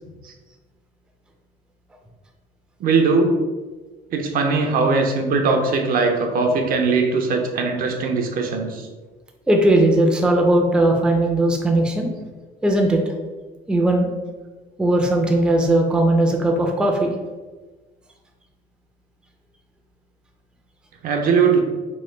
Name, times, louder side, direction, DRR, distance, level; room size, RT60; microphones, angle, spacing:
voice 1, 2.8-3.4 4.1-8.9 21.0-21.6, right 4 dB, 60° right, 3 dB, 0.5 m, -20 dB
voice 2, 9.5-12.1 12.6-13.0 13.7-14.1 14.8-17.1, right 1 dB, 5° right, 1 dB, 0.4 m, -18 dB
3.0 x 2.2 x 3.2 m, 1.3 s
cardioid pair, 110°, 17 cm